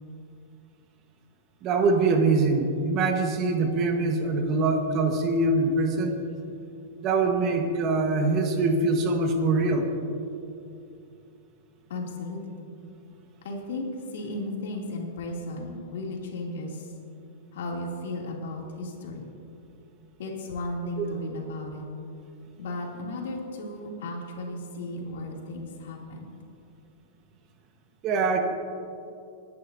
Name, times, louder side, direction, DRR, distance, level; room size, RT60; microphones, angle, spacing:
voice 1, 1.6-6.2 7.0-9.9 21.0-21.1 28.0-28.4, right 3 dB, 30° right, 4 dB, 1.3 m, -23 dB
voice 2, 11.9-12.7 13.4-16.9 17.5-19.3 20.2-21.8 22.6-26.3, left 1 dB, 75° left, -1 dB, 2.7 m, -35 dB
26.5 x 10.5 x 2.7 m, 2.7 s
supercardioid pair, 150°, 0 cm